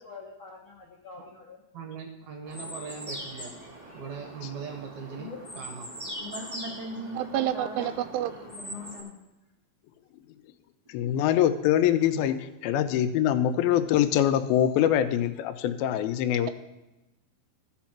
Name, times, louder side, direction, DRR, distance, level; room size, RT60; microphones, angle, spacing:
voice 1, 0.0-1.6 5.2-5.4 7.8-8.0, left 4 dB, 70° left, -2 dB, 1.2 m, -45 dB
voice 2, 1.7-3.5 3.9-5.9 12.1-12.3, right 5 dB, 65° right, 3 dB, 2.1 m, -40 dB
sound 1, 2.4-9.0, equal, 10° right, 2.3 m, -42 dB
voice 3, 6.1-7.9 8.5-9.1, equal, 45° right, -4 dB, 1.3 m, -39 dB
voice 4, 7.2-8.3, right 12 dB, 85° right, 11 dB, 2.5 m, -28 dB
voice 5, 10.9-12.4 12.6-16.5, left 11 dB, 90° left, 10 dB, 2.5 m, -24 dB
14.5 x 5.2 x 5.9 m, 0.99 s
omnidirectional pair, 4.2 m